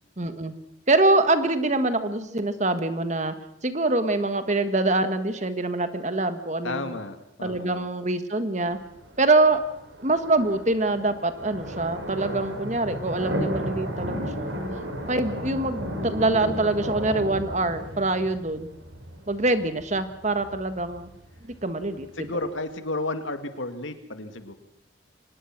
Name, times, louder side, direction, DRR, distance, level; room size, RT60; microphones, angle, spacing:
voice 1, 0.2-0.5 0.9-3.3 3.6-7.0 7.4-8.8 9.2-9.6 10.0-14.6 15.1-18.7 19.3-21.1 21.6-22.3, right 2 dB, 35° right, 10 dB, 1.6 m, -24 dB
voice 2, 6.6-7.9 22.2-24.5, left 2 dB, 90° left, 8 dB, 2.2 m, -32 dB
sound 1, 8.7-22.6, equal, 70° right, 6.1 m, -34 dB
25.0 x 19.5 x 6.1 m, 0.78 s
head